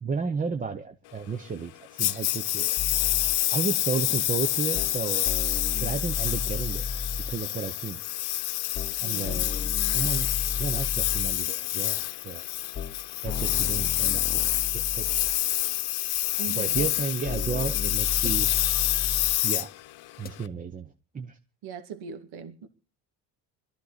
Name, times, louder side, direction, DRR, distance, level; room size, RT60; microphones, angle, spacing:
voice 1, 0.0-2.9 3.5-5.3 5.8-6.9 7.3-8.0 9.0-9.5 9.9-12.4 13.2-15.2 16.3-18.5 19.4-19.7 20.2-21.4, right 5 dB, 20° right, 8 dB, 0.8 m, -33 dB
Engine, 2.0-20.4, left 16 dB, 65° left, 0.9 m, -27 dB
sound 1, 2.8-3.4 4.8-5.0 5.3-7.4 8.8-9.0 9.2-11.4 12.8-13.0 13.2-15.4 16.8-17.0 17.2-19.4 20.3-20.4, left 4 dB, 20° left, 0.7 m, -33 dB
voice 2, 9.0-9.9 16.4-16.8 21.6-22.7, right 6 dB, 65° right, 8 dB, 2.1 m, -40 dB
21.0 x 13.5 x 4.1 m, 0.35 s
cardioid pair, 150°, 41 cm